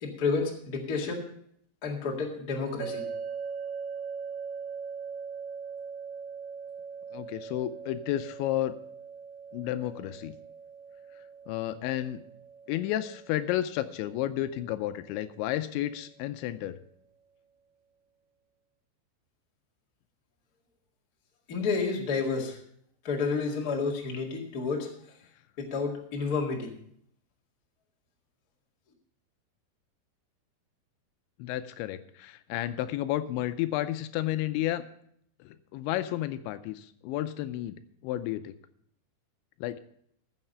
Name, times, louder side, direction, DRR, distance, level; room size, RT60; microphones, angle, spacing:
voice 1, 0.0-1.2 1.8-3.0 21.5-22.6 23.0-24.9 25.6-26.7, left 4 dB, 50° left, -1 dB, 1.0 m, -30 dB
sound 1, 2.8-15.9, right 6 dB, 75° right, 3.6 m, -41 dB
voice 2, 7.1-8.8 9.5-10.3 11.5-12.2 12.7-16.8 31.4-34.8 35.4-37.8 38.0-38.5 39.6-39.8, left 13 dB, 80° left, 11 dB, 2.8 m, -32 dB
14.5 x 7.4 x 5.5 m, 0.68 s
omnidirectional pair, 5.3 m